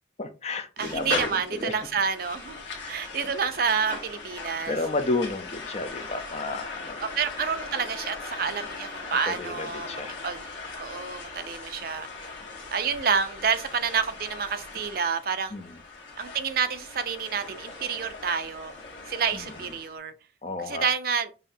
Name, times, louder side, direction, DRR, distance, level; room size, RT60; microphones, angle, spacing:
voice 1, 0.2-1.8 2.7-3.1 4.7-7.0 9.2-10.2 15.5-15.8 19.3-19.7 20.4-20.9, left 2 dB, 35° left, 0.6 m, -32 dB
sound 1, 0.8-19.9, left 3 dB, 85° left, 1.2 m, -39 dB
voice 2, 0.8-2.6 2.9-4.7 7.2-10.5 10.8-12.3 12.7-15.5 16.2-18.7 19.1-20.1 20.6-21.3, right 6 dB, 50° right, 0.5 m, -29 dB
5.6 x 2.7 x 2.6 m
head